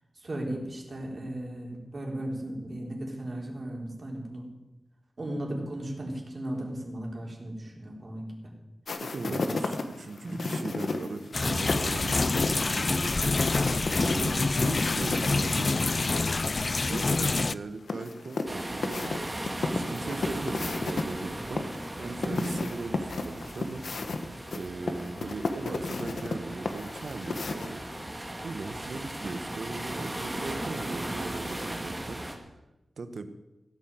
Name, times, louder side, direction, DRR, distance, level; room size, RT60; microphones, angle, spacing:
voice 1, 0.2-4.5 5.2-8.5 9.2-9.5 10.2-10.5 15.0-15.1 22.2-22.6, right 1 dB, 45° right, -1 dB, 3.9 m, -36 dB
sound 1, 8.9-15.3 15.6-15.7 17.9-21.0 21.6-28.0, left 3 dB, 70° left, 1.3 m, -33 dB
voice 2, 9.0-15.7 16.8-21.6 22.0-23.8 24.5-27.8 28.4-32.5 33.0-33.3, right 3 dB, 70° right, 9 dB, 1.2 m, -38 dB
sound 2, 11.3-17.5, left 3 dB, 40° left, 0.4 m, -26 dB
sound 3, 18.5-32.4, right 1 dB, 15° right, 1.8 m, -37 dB
16.0 x 9.0 x 7.8 m, 1.0 s
wide cardioid pair, 110°, 0 cm